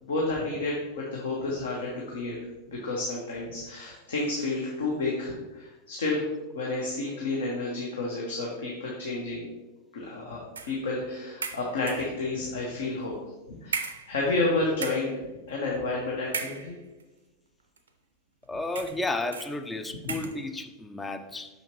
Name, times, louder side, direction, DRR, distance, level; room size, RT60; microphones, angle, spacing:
voice 1, 0.0-2.4 2.7-6.2 6.5-9.5 9.9-13.1 13.6-13.8 14.1-15.2 15.5-16.7, left 2 dB, 65° left, -3 dB, 1.1 m, -30 dB
sound 1, 10.6-10.8 11.4-12.2 13.0-13.1 13.7-14.5 14.7-15.2 16.3-17.0 17.8-17.9 18.7-19.1 19.3-19.6 20.1-20.4, right 5 dB, 70° right, 0.5 m, -36 dB
voice 2, 18.5-21.5, left 2 dB, 10° left, 8 dB, 0.4 m, -32 dB
6.2 x 5.6 x 2.9 m, 1.1 s
figure-of-eight pair, 90°, 0 cm